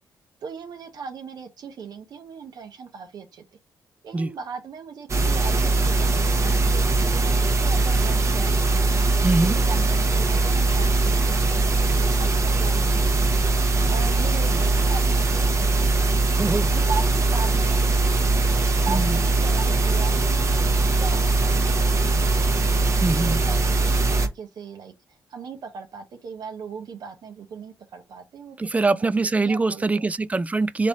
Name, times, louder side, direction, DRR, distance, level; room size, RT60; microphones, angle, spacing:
voice 1, 0.4-3.4 4.0-9.1 9.4-13.3 13.9-15.5 16.7-18.3 18.6-22.3 23.2-29.1 29.4-30.1, right 5 dB, 70° right, 1.0 m, -38 dB
sound 1, 5.1-24.3, right 3 dB, 45° right, 1.0 m, -21 dB
voice 2, 9.2-9.5 14.5-14.6 16.3-16.7 18.9-19.2 23.0-23.5 28.6-30.9, right 3 dB, 20° right, 0.4 m, -23 dB
3.6 x 3.2 x 4.0 m
cardioid pair, 65°, 7 cm